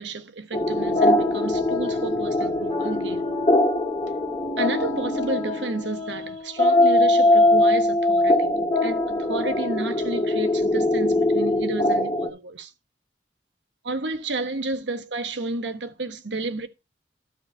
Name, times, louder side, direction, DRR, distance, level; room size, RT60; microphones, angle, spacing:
voice 1, 0.0-3.3 4.6-12.7 13.8-16.7, right 3 dB, 90° right, 1.3 m, -31 dB
sound 1, 0.5-12.3, left 1 dB, 25° left, 2.2 m, -22 dB
13.0 x 4.8 x 4.3 m
head